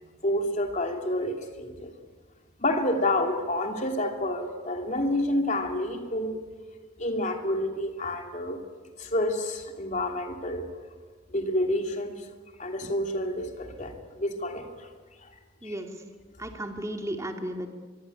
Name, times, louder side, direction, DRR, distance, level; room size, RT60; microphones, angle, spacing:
voice 1, 0.2-1.9 2.6-6.7 7.0-8.6 9.0-10.7 11.3-12.3 12.6-14.9 15.2-15.3 15.6-15.7, left 1 dB, 40° left, 4 dB, 2.9 m, -29 dB
voice 2, 15.6-16.0 16.4-17.7, right 1 dB, 15° right, 4 dB, 2.7 m, -34 dB
24.0 x 23.0 x 9.8 m, 1.4 s
head